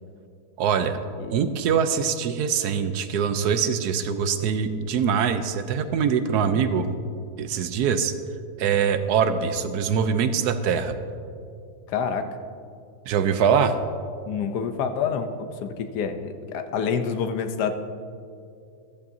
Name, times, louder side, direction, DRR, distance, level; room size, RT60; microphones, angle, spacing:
voice 1, 0.6-1.0 1.3-6.9 7.4-8.1 8.6-11.0 13.1-13.8, right 7 dB, 80° right, 10 dB, 1.2 m, -23 dB
voice 2, 11.9-12.3 14.3-17.7, left 6 dB, 85° left, 8 dB, 1.3 m, -27 dB
14.0 x 13.5 x 2.7 m, 2.5 s
omnidirectional pair, 1.7 m